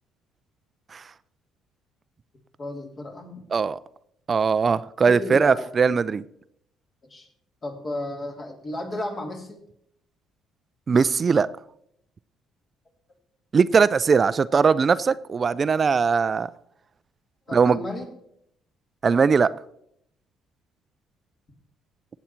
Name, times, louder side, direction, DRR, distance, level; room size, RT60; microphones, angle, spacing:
voice 1, 2.6-3.4 5.0-5.7 7.1-7.3 7.6-9.6 17.5-18.1, left 1 dB, 40° left, 1 dB, 3.3 m, -33 dB
voice 2, 4.3-6.2 10.9-11.5 13.5-16.5 17.5-17.8 19.0-19.5, right 5 dB, 40° right, 17 dB, 0.4 m, -20 dB
16.5 x 8.1 x 4.5 m, 0.74 s
supercardioid pair, 80°, 0 cm